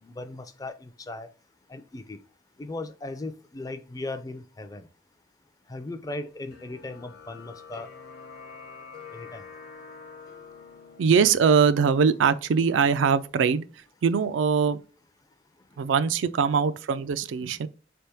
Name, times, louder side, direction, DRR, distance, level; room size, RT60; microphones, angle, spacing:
voice 1, 0.0-1.3 1.7-2.2 2.6-4.9 5.7-7.9 9.1-9.5, left 2 dB, 20° left, 0.4 m, -37 dB
sound 1, 6.5-13.4, left 5 dB, 55° left, 0.7 m, -47 dB
voice 2, 11.0-13.6 14.0-14.8 15.8-17.7, right 6 dB, 80° right, 0.4 m, -22 dB
3.5 x 3.3 x 4.3 m
head